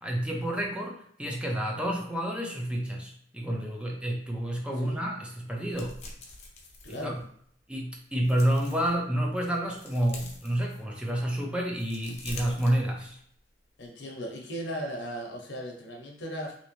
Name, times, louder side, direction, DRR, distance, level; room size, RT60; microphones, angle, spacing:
voice 1, 0.0-6.0 6.9-7.2 7.7-13.2, right 1 dB, 5° right, -1 dB, 0.5 m, -29 dB
sound 1, 5.7-7.6 8.1-9.0 9.4-11.2 11.6-13.4 13.7-13.8, left 2 dB, 35° left, 0.6 m, -45 dB
voice 2, 6.8-7.2 13.8-16.5, equal, 75° left, 1 dB, 0.8 m, -37 dB
3.1 x 2.9 x 3.0 m, 0.64 s
head